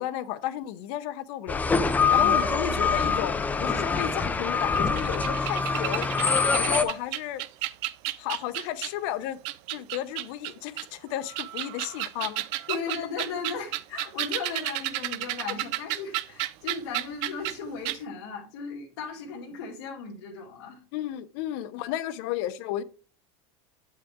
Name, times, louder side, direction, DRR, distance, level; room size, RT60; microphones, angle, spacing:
voice 1, 0.0-6.1 6.5-7.4 8.2-9.4 9.7-12.4 20.9-22.8, left 12 dB, 60° left, 0.8 m, -33 dB
sound 1, 1.5-6.8, left 5 dB, 10° left, 0.6 m, -24 dB
sound 2, 4.7-9.0 9.4-10.8 11.3-17.6 17.8-18.0, right 17 dB, 60° right, 0.5 m, -32 dB
voice 2, 12.7-20.8, left 5 dB, 75° left, 2.3 m, -36 dB
8.4 x 5.7 x 3.6 m
supercardioid pair, 150°, 14 cm